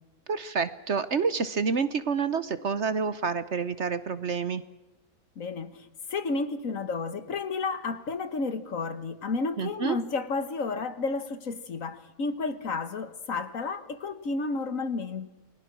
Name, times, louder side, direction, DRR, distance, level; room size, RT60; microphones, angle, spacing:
voice 1, 0.3-4.6 9.6-10.0, right 5 dB, 50° right, 14 dB, 1.2 m, -28 dB
voice 2, 5.4-15.3, left 4 dB, 60° left, 12 dB, 1.7 m, -32 dB
29.0 x 21.0 x 6.1 m, 1.0 s
omnidirectional pair, 1.7 m